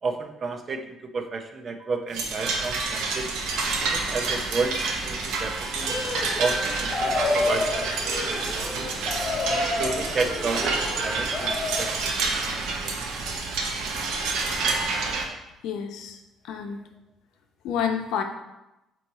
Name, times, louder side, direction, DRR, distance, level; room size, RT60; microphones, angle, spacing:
voice 1, 0.0-3.3 3.8-4.8 5.0-5.9 6.4-8.9 9.4-11.5 11.8-12.9, right 4 dB, 35° right, 6 dB, 0.7 m, -32 dB
sound 1, 2.1-15.2, right 3 dB, 85° right, 0.9 m, -28 dB
sound 2, 5.8-12.0, left 2 dB, 25° left, 1.3 m, -30 dB
voice 2, 15.6-16.2 16.5-16.8 17.6-18.2, left 7 dB, 80° left, 5 dB, 0.8 m, -29 dB
7.8 x 3.1 x 4.2 m, 0.95 s
cardioid pair, 115°, 0 cm